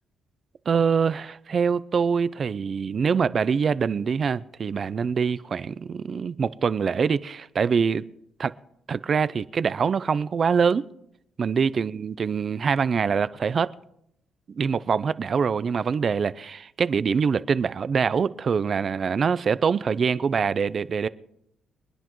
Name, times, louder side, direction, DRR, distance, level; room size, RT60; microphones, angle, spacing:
voice 1, 0.7-8.0 8.4-8.5 8.9-10.8 11.4-13.7 14.6-21.1, right 6 dB, 45° right, 0.5 m, -24 dB
27.5 x 10.0 x 3.1 m
cardioid pair, 90°, 0 cm